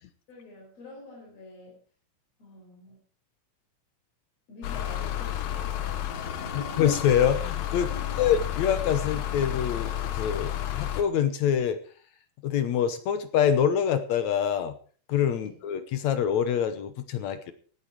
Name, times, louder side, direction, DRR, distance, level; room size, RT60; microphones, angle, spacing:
voice 1, 0.3-1.8 2.4-3.0 4.5-6.9 7.9-8.3 15.4-15.6, left 2 dB, 50° left, -2 dB, 5.3 m, -46 dB
sound 1, 4.6-11.0, left 11 dB, 90° left, 2.8 m, -31 dB
voice 2, 6.6-7.9 8.2-9.9 10.2-11.8 12.4-14.8 15.1-17.5, left 9 dB, 70° left, 10 dB, 2.1 m, -25 dB
17.0 x 9.7 x 4.6 m, 0.43 s
omnidirectional pair, 3.8 m